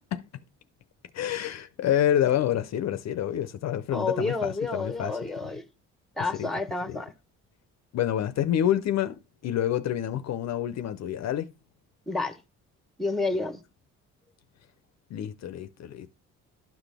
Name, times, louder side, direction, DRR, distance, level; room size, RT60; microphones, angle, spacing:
voice 1, 1.1-5.2 6.3-6.5 6.9-7.0 7.9-11.5 15.1-16.1, left 11 dB, 60° left, 0.5 m, -28 dB
voice 2, 3.9-5.6 6.2-7.1 12.1-12.4 13.0-13.6, left 3 dB, ahead, 0.9 m, -29 dB
12.0 x 4.0 x 3.4 m
cardioid pair, 90°, 30 cm